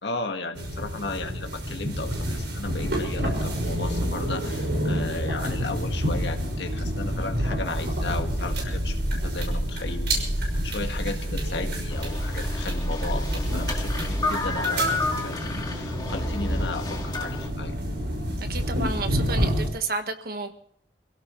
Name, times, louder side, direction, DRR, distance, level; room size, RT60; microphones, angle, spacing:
voice 1, 0.0-10.3 10.6-17.8, left 3 dB, 70° left, 4 dB, 1.7 m, -35 dB
sound 1, 0.5-19.7, equal, 70° right, 5.9 m, -29 dB
sound 2, 6.1-14.6, equal, 35° right, 2.0 m, -31 dB
sound 3, 11.9-17.5, left 2 dB, 20° left, 1.8 m, -31 dB
voice 2, 18.5-20.5, right 3 dB, 55° right, 7 dB, 1.4 m, -31 dB
24.5 x 17.0 x 3.2 m, 0.63 s
head